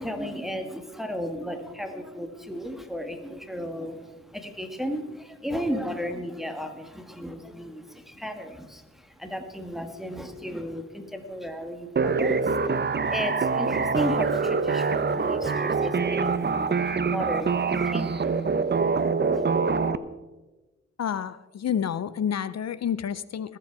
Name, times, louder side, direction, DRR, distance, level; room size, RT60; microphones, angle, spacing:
voice 1, 0.0-19.1 19.3-19.4, equal, ahead, 5 dB, 1.7 m, -35 dB
sound 1, 12.0-20.0, right 4 dB, 35° right, 0.7 m, -25 dB
voice 2, 21.0-23.6, left 8 dB, 60° left, 17 dB, 0.5 m, -29 dB
20.0 x 7.7 x 4.7 m, 1.2 s
cardioid pair, 60°, 29 cm